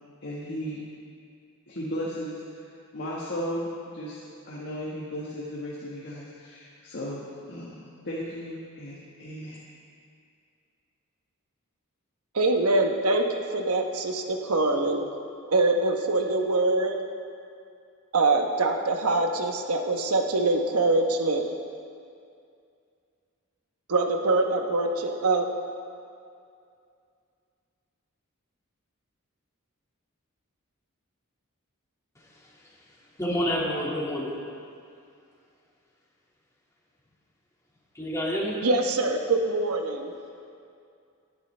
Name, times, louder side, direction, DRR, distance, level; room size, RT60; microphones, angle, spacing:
voice 1, 0.2-0.8 1.7-2.4 2.9-9.6, equal, 55° left, -6 dB, 1.5 m, -35 dB
voice 2, 12.3-15.0 15.5-17.0 18.1-21.4 23.9-25.5 38.6-40.1, right 2 dB, 85° right, 4 dB, 1.1 m, -24 dB
voice 3, 33.2-34.4 37.9-38.6, equal, 15° left, -5 dB, 2.1 m, -28 dB
18.0 x 11.0 x 3.3 m, 2.4 s
head